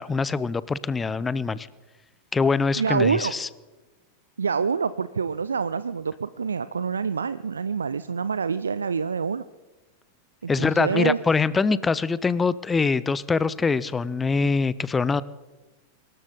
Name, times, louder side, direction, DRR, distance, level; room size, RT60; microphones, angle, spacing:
voice 1, 0.0-1.7 2.3-3.5 10.5-15.2, left 4 dB, 15° left, 19 dB, 0.5 m, -24 dB
voice 2, 2.8-3.3 4.4-9.4 10.4-11.2, right 5 dB, 75° right, 15 dB, 0.4 m, -26 dB
24.5 x 13.5 x 4.0 m, 1.2 s
figure-of-eight pair, 90°, 0 cm